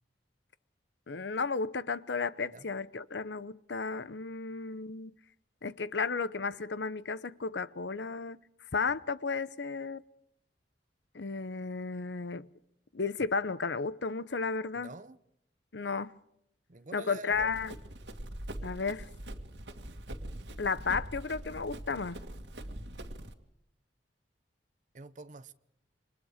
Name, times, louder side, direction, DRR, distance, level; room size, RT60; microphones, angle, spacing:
voice 1, 1.1-5.1 5.6-8.4 8.7-10.0 11.1-12.5 12.9-14.9 15.7-16.2 16.9-17.7 18.6-19.1 20.6-22.3, left 4 dB, 85° left, 0.9 m, -33 dB
voice 2, 14.7-15.2 16.7-17.5 24.9-25.5, right 3 dB, 45° right, 0.9 m, -47 dB
Run, 17.3-23.3, right 1 dB, 85° right, 2.2 m, -43 dB
28.0 x 25.0 x 5.1 m
head